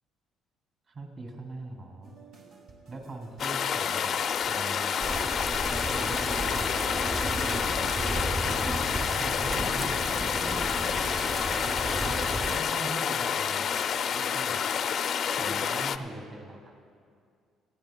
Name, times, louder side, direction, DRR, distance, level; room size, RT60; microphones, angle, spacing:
voice 1, 0.9-2.1 2.9-4.2 4.5-5.2 5.8-8.3 9.0-10.6 12.4-13.8 14.1-14.6 15.4-16.8, right 2 dB, 40° right, 2 dB, 2.5 m, -42 dB
sound 1, 2.0-8.0, right 2 dB, 70° right, 2.0 m, -53 dB
sound 2, 3.4-16.0, left 7 dB, 45° left, 0.4 m, -29 dB
sound 3, 5.0-12.6, right 1 dB, 20° right, 0.6 m, -33 dB
20.0 x 15.0 x 2.2 m, 2.2 s
cardioid pair, 145°, 0 cm